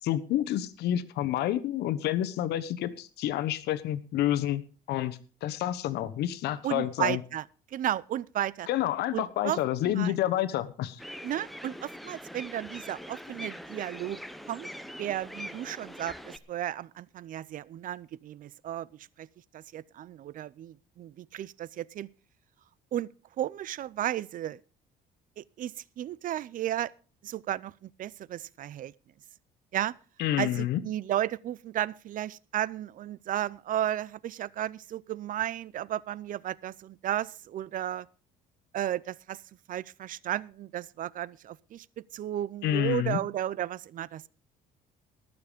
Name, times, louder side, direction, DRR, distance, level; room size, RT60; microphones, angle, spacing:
voice 1, 0.0-4.6 4.9-7.2 8.7-11.0 30.2-30.8 42.6-43.2, left 12 dB, 80° left, 1.1 m, -29 dB
voice 2, 6.6-7.4 7.7-8.7 9.1-9.6 9.8-10.1 11.2-14.2 14.5-14.7 15.0-19.3 19.5-22.1 22.9-23.1 23.4-24.6 25.4-26.9 27.2-28.9 29.7-29.9 30.4-38.1 38.7-39.4 39.7-41.9 42.1-44.2, right 12 dB, 55° right, 0.5 m, -34 dB
sound 1, 11.0-16.4, equal, ahead, 0.9 m, -43 dB
19.0 x 7.0 x 5.1 m
cardioid pair, 110°, 17 cm